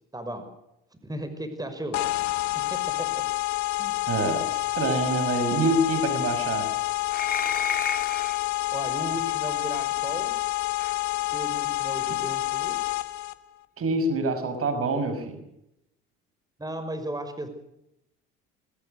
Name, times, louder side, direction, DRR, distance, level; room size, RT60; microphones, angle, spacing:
voice 1, 0.1-0.5 1.0-2.0 2.7-3.1 3.8-4.0 8.7-10.3 11.3-12.9 16.6-17.5, right 1 dB, 15° right, 9 dB, 5.8 m, -35 dB
sound 1, 1.9-13.3, left 17 dB, 70° left, 1.7 m, -28 dB
voice 2, 4.1-6.7 12.1-12.2 13.8-15.4, right 2 dB, 50° right, 9 dB, 5.9 m, -26 dB
sound 2, 7.1-8.4 9.7-9.9 10.8-11.0, left 6 dB, 30° left, 3.3 m, -31 dB
24.0 x 21.5 x 6.6 m, 0.82 s
hypercardioid pair, 60°, 29 cm